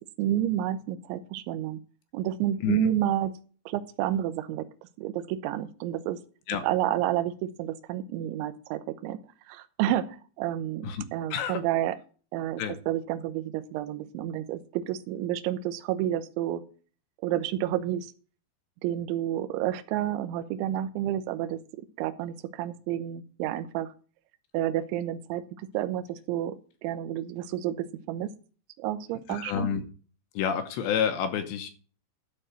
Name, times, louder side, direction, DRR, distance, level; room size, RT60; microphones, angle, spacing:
voice 1, 0.2-1.8 2.1-3.3 3.7-4.7 5.0-6.2 6.6-7.3 7.6-9.2 9.5-12.0 12.3-16.6 17.2-18.1 18.8-23.9 24.5-25.4 25.7-26.6 26.8-28.3 28.8-29.7, right 12 dB, 85° right, 9 dB, 3.0 m, -30 dB
voice 2, 11.3-11.6 12.6-12.8 29.3-29.8 30.3-31.7, left 8 dB, 75° left, 7 dB, 3.0 m, -29 dB
12.0 x 4.6 x 7.5 m, 0.39 s
omnidirectional pair, 5.5 m